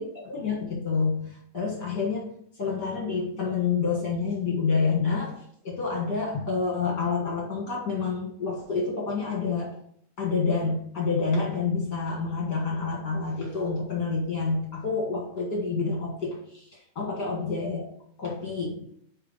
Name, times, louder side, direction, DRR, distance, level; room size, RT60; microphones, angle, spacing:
voice 1, 0.0-2.3 2.6-5.4 5.6-9.7 10.2-16.6 16.9-17.8 18.2-18.8, left 4 dB, 50° left, -3 dB, 1.3 m, -28 dB
8.8 x 3.4 x 4.0 m, 0.67 s
omnidirectional pair, 3.8 m